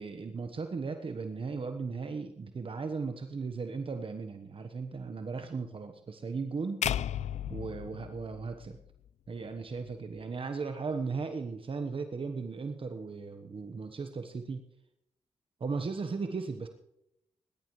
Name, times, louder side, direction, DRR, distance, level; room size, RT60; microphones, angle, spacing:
voice 1, 0.0-6.9 7.5-8.8 9.3-14.6 15.6-16.7, right 4 dB, 45° right, 6 dB, 1.2 m, -36 dB
sound 1, 6.8-9.1, left 10 dB, 70° left, 0.4 m, -35 dB
20.5 x 11.5 x 3.2 m, 0.80 s
cardioid pair, 65°, 12 cm